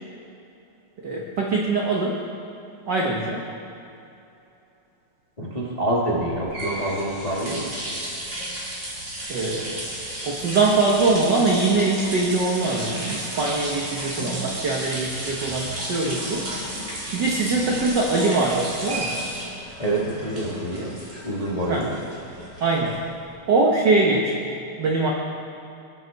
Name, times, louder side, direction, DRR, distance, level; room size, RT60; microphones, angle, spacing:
voice 1, 1.0-2.2 2.9-3.4 9.3-9.9 10.2-16.5 17.1-19.3 21.7-21.9 22.6-23.0 23.5-24.5 24.8-25.1, right 3 dB, 80° right, -1 dB, 0.9 m, -22 dB
voice 2, 5.4-7.7 19.8-21.0 21.2-22.0, right 1 dB, 30° left, -5 dB, 0.7 m, -26 dB
sound 1, 6.2-23.2, right 1 dB, 25° right, 2.5 m, -33 dB
20.0 x 6.7 x 4.5 m, 2.9 s
omnidirectional pair, 3.4 m